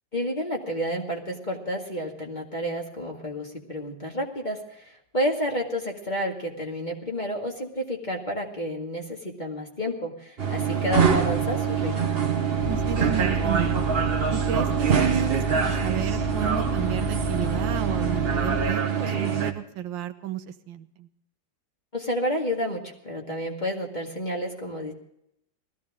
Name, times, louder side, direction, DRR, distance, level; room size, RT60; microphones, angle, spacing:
voice 1, 0.1-12.1 21.9-24.9, equal, 25° left, 0 dB, 2.0 m, -30 dB
sound 1, 10.4-19.5, right 7 dB, 35° right, 1.1 m, -24 dB
sound 2, 12.6-18.7, left 4 dB, 90° left, 4.4 m, -33 dB
voice 2, 12.6-13.7 14.3-21.1, right 10 dB, 75° right, 9 dB, 1.5 m, -32 dB
19.5 x 14.5 x 3.6 m, 0.74 s
omnidirectional pair, 2.1 m